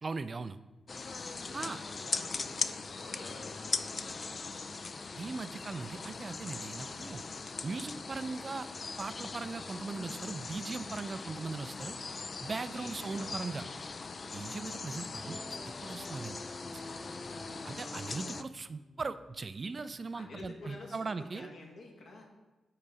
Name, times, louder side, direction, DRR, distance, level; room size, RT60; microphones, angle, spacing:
voice 1, 0.0-0.6 1.5-1.8 5.2-7.2 7.6-8.7 9.0-12.0 12.4-13.7 14.3-16.4 17.6-21.5, right 4 dB, 35° right, 13 dB, 0.4 m, -39 dB
sound 1, 0.9-18.4, left 4 dB, 40° left, 0.3 m, -40 dB
voice 2, 1.4-4.5 12.7-13.8 17.1-17.7 20.1-22.2, left 2 dB, 70° left, 0 dB, 1.9 m, -50 dB
sound 2, 15.2-20.3, left 1 dB, 10° left, 0.9 m, -49 dB
8.8 x 4.0 x 4.7 m, 1.1 s
cardioid pair, 90°, 0 cm